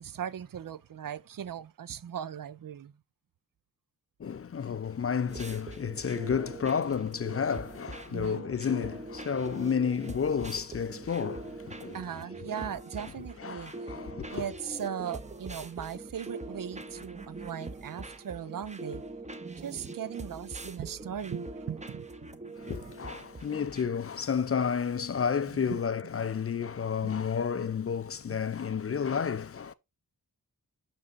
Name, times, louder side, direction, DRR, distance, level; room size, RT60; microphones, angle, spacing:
voice 1, 0.0-2.9 8.1-8.5 11.9-13.9 14.3-19.0 19.5-22.1 22.8-22.9 25.5-25.8 27.0-27.2 28.3-28.4, right 9 dB, 60° right, 0.5 m, -38 dB
voice 2, 4.2-12.0 13.4-14.5 22.6-29.7, left 7 dB, 40° left, 0.4 m, -31 dB
sound 1, 5.3-23.8, right 2 dB, 20° right, 0.8 m, -43 dB
5.4 x 5.4 x 3.9 m
wide cardioid pair, 70°, 37 cm